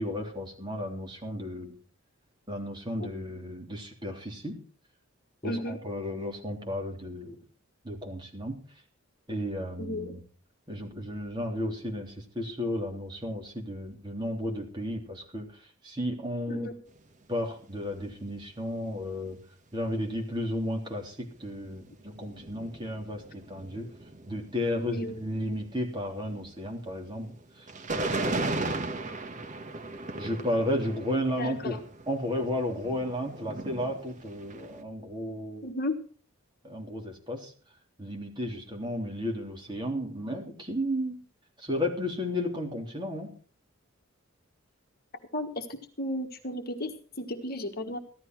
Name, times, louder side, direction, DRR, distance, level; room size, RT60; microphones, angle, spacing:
voice 1, 0.0-1.7 2.5-4.6 5.4-7.4 7.8-8.6 9.3-10.2 10.7-15.5 15.8-16.7 17.3-19.4 19.7-23.9 24.3-27.7 27.9-28.7 30.2-31.8 32.1-35.7 36.6-37.5 38.0-41.2 41.6-43.3, left 1 dB, 20° right, 1 dB, 3.3 m, -33 dB
voice 2, 5.4-5.8 9.8-10.2 16.5-16.8 24.7-25.2 31.4-31.8 35.6-36.0 45.3-48.0, left 1 dB, 45° left, 6 dB, 1.5 m, -34 dB
sound 1, 16.9-17.1 17.8-17.9 18.3-18.4 18.7-18.8 21.3-34.8, right 2 dB, 35° right, 1.4 m, -37 dB
15.0 x 12.5 x 4.5 m, 0.40 s
head